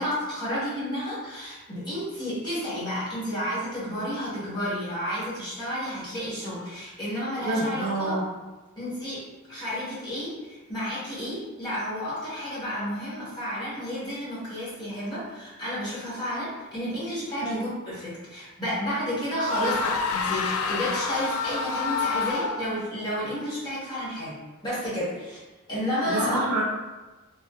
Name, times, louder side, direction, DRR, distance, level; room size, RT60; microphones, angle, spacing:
voice 1, 0.0-8.2 8.8-25.4 25.7-26.4, equal, 20° left, -9 dB, 1.2 m, -31 dB
voice 2, 7.4-8.3 17.4-17.6 26.0-26.6, right 2 dB, 80° right, -2 dB, 0.6 m, -27 dB
sound 1, 19.5-22.8, left 4 dB, 70° left, 0.3 m, -28 dB
3.3 x 2.6 x 2.3 m, 1.2 s
head